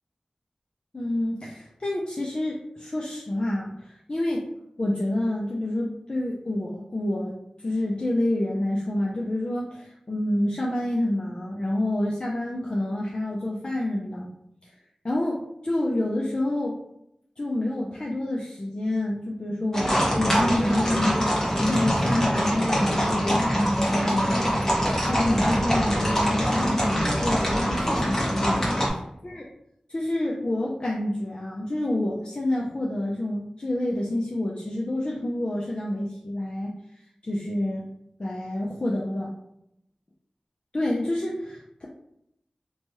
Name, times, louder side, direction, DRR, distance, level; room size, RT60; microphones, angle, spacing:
voice 1, 0.9-4.5 4.8-14.3 14.6-14.7 15.0-16.8 17.4-23.5 23.8-24.5 25.0-28.6 29.2-29.4 29.9-36.7 37.2-37.8 38.2-39.3 40.7-41.9, left 1 dB, 45° left, -3 dB, 0.5 m, -28 dB
sound 1, 19.7-28.9, equal, 20° left, 1.0 m, -23 dB
2.9 x 2.2 x 3.0 m, 0.77 s
wide cardioid pair, 50°, 2 cm